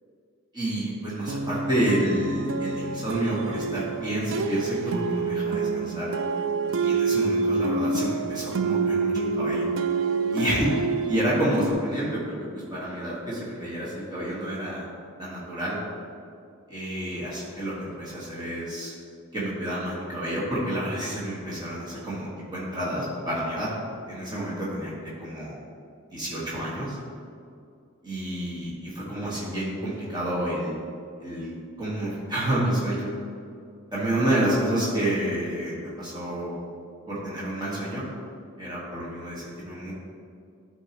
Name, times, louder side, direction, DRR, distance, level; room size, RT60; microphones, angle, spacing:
voice 1, 0.5-6.1 6.8-9.7 10.3-10.7 11.1-12.2 12.5-14.9 15.2-15.8 16.7-18.9 19.3-23.7 24.1-24.9 25.2-25.6 26.1-27.0 28.0-30.8 31.2-31.5 31.8-33.1 33.9-36.5 37.1-38.0 38.6-39.9, right 1 dB, 20° right, -8 dB, 1.6 m, -29 dB
sound 1, 1.3-11.7, right 4 dB, 65° right, 0.4 m, -27 dB
11.5 x 4.6 x 3.0 m, 2.4 s
head